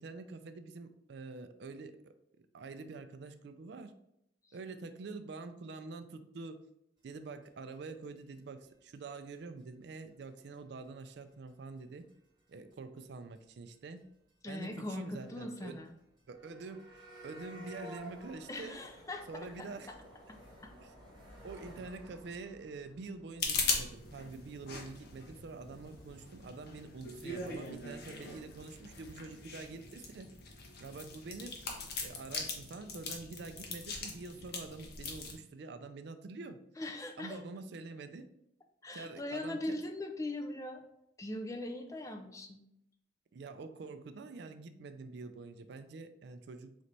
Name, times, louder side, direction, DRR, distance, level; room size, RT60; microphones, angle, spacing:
voice 1, 0.0-3.9 4.5-6.7 7.0-12.1 12.5-14.0 14.5-15.8 16.3-18.8 19.3-19.9 20.8-20.9 21.4-30.3 30.8-31.6 32.0-36.6 37.2-38.3 38.9-39.8 43.3-46.7, right 3 dB, 60° right, 9 dB, 0.4 m, -46 dB
sound 1, 7.4-7.5 7.7-7.8 8.0-8.1 8.3-8.4 8.6-8.7 8.9-9.0 9.3-9.6 9.9-10.0 10.2-10.3 10.5-10.8 11.1-11.2 11.5-12.1 12.4-12.7 13.0-13.1 13.3-13.4 13.7-13.8 14.0-14.1 14.3-14.4 14.6-26.5, equal, 25° right, 1.7 m, -55 dB
voice 2, 14.4-15.9 18.5-19.9 20.6-20.7 36.8-37.4 38.8-40.8 41.2-42.6, left 1 dB, 15° left, 5 dB, 0.4 m, -40 dB
sound 2, 23.4-35.3, left 4 dB, 55° left, 0.8 m, -40 dB
4.2 x 3.2 x 3.9 m, 0.80 s
head